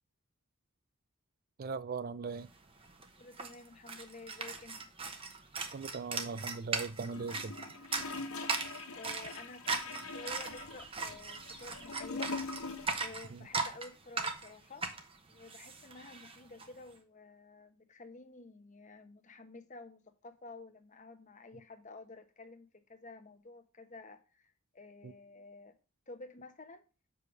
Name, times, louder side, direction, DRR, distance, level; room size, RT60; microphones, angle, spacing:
voice 1, 1.6-2.5 5.7-7.6 13.3-13.4 25.0-25.1, right 4 dB, 40° right, 0.3 m, -39 dB
sound 1, 2.5-2.6 2.8-16.7, right 4 dB, 25° right, 0.8 m, -39 dB
voice 2, 3.2-4.9 9.0-12.4 13.0-14.8 15.3-25.7 26.1-26.8, left 3 dB, 35° left, 0.9 m, -51 dB
Gurgling / Toilet flush, 7.1-13.2 13.4-13.5, left 3 dB, 70° left, 1.3 m, -43 dB
6.7 x 4.9 x 6.0 m
head